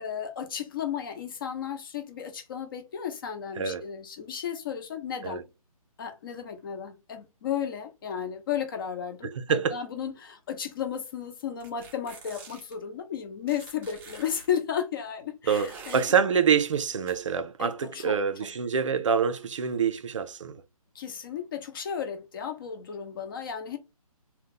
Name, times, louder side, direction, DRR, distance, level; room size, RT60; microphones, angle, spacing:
voice 1, 0.0-5.4 6.0-16.0 17.6-18.2 20.9-23.8, left 8 dB, 35° left, 0.8 m, -34 dB
voice 2, 3.6-3.9 5.2-5.4 9.2-9.8 15.5-20.6, right 6 dB, 55° right, 0.6 m, -26 dB
sound 1, 11.6-12.8 13.5-14.5 15.5-16.2 17.1-17.2, right 4 dB, 10° right, 0.6 m, -46 dB
3.8 x 2.2 x 4.1 m
figure-of-eight pair, 150°, 19 cm